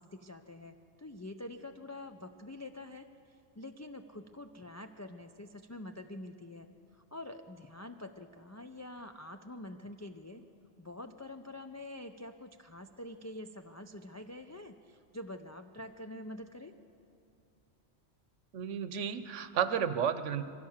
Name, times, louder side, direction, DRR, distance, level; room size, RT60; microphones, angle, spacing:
voice 1, 0.0-10.4 10.8-16.7, left 1 dB, 25° left, 5 dB, 0.3 m, -46 dB
voice 2, 18.5-20.4, right 8 dB, 85° right, 12 dB, 1.1 m, -32 dB
22.5 x 16.0 x 7.2 m, 2.6 s
omnidirectional pair, 1.2 m